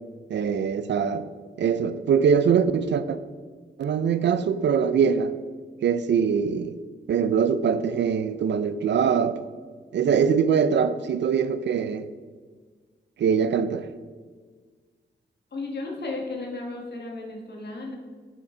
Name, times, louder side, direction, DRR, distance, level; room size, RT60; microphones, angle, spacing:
voice 1, 0.3-1.3 1.6-3.2 3.8-5.3 5.8-6.8 7.1-9.4 9.9-12.1 13.2-13.9, right 7 dB, 65° right, 0.4 m, -23 dB
voice 2, 15.5-17.9, left 2 dB, 60° left, 1.5 m, -34 dB
6.1 x 4.2 x 4.4 m
cardioid pair, 55°, 20 cm